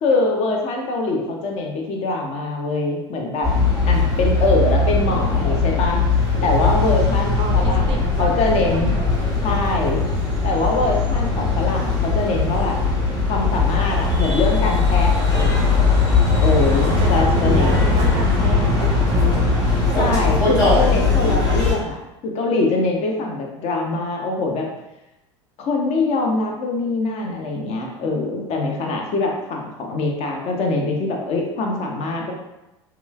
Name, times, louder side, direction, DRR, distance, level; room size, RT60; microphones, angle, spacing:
voice 1, 0.0-3.5 3.9-6.0 6.4-8.9 9.4-10.0 10.4-12.8 13.3-15.8 16.4-17.8 19.9-24.7 25.6-32.3, left 3 dB, 45° left, 1 dB, 0.6 m, -23 dB
sound 1, 3.4-21.7, left 3 dB, 25° left, 1.4 m, -19 dB
voice 2, 7.2-8.3 8.6-8.8 17.0-19.4, right 5 dB, 40° right, 3 dB, 0.4 m, -31 dB
3.0 x 2.3 x 2.3 m, 0.92 s
figure-of-eight pair, 75°, 15 cm